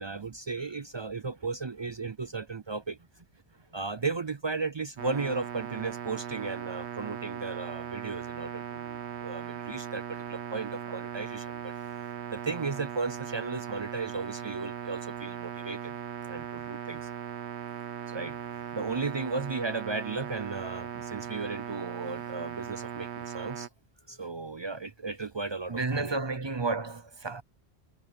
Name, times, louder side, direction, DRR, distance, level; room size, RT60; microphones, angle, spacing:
voice 1, 0.0-3.0 3.7-11.7 12.3-15.9 16.3-17.1 18.1-23.7 24.1-26.2, right 4 dB, 45° right, 0.3 m, -35 dB
sound 1, 5.0-23.7, right 9 dB, 85° right, 1.2 m, -39 dB
voice 2, 25.7-27.4, right 3 dB, 30° right, 0.7 m, -31 dB
omnidirectional pair, 1.1 m